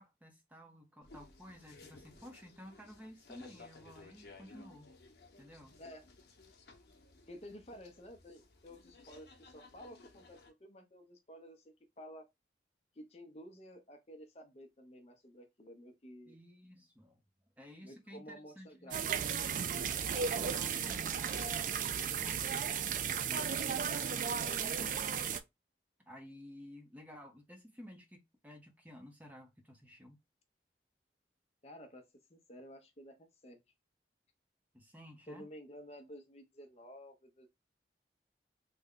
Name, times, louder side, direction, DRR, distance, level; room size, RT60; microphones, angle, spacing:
voice 1, 0.0-4.9 5.4-5.8 16.3-17.2 17.6-19.4 19.8-22.7 23.1-23.5 24.3-25.1 26.1-30.2 34.7-35.5, equal, 10° right, 0.6 m, -53 dB
sound 1, 1.0-10.5, left 3 dB, 70° left, 0.8 m, -58 dB
voice 2, 7.3-12.2 13.0-16.3 17.8-19.2 31.6-33.6 35.3-37.5, equal, 35° left, 0.6 m, -52 dB
sound 2, 18.9-25.4, right 7 dB, 45° right, 0.3 m, -35 dB
3.4 x 2.1 x 3.7 m
head